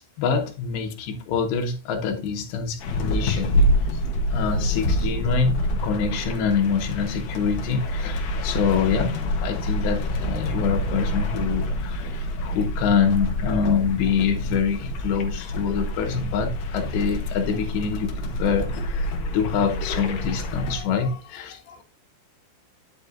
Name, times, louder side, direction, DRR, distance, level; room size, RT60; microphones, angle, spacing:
voice 1, 0.0-4.0 4.3-21.8, left 6 dB, 80° left, 3.6 m, -26 dB
sound 1, 2.8-20.8, left 1 dB, 60° left, 2.6 m, -27 dB
10.0 x 6.9 x 2.7 m
omnidirectional pair, 5.0 m